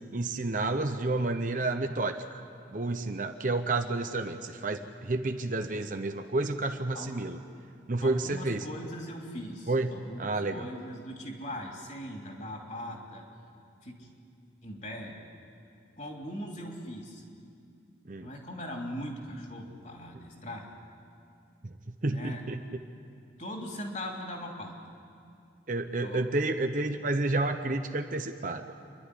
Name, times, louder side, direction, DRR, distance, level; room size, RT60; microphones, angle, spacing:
voice 1, 0.0-2.4 2.7-7.4 7.9-8.6 9.7-10.7 18.1-18.3 21.6-21.7 22.0-22.6 25.7-28.7, right 2 dB, 45° right, 7 dB, 0.7 m, -30 dB
voice 2, 6.9-7.2 8.0-10.2 10.5-13.2 13.8-14.1 14.6-15.2 16.0-17.2 18.2-20.7 22.0-22.4 23.4-24.9 26.0-26.2, equal, 40° left, 0 dB, 3.1 m, -40 dB
28.5 x 11.5 x 9.9 m, 2.5 s
head